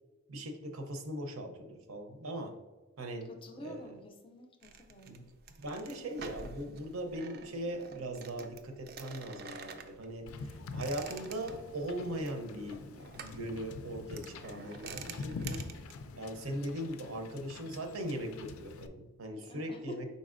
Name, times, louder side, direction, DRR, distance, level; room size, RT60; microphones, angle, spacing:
voice 1, 0.3-2.6 3.0-3.3 3.6-3.9 5.1-5.2 5.6-10.3 10.7-12.8 13.2-15.6 16.2-20.0, right 1 dB, 85° right, 5 dB, 0.7 m, -39 dB
voice 2, 3.2-5.2 19.4-20.0, equal, 25° left, 5 dB, 0.4 m, -48 dB
sound 1, 4.6-15.9, right 5 dB, 45° right, 0.4 m, -49 dB
Wind / Boat Water vehicle, 10.3-18.9, left 4 dB, 90° left, 0.4 m, -45 dB
5.2 x 4.0 x 2.5 m, 1.2 s
head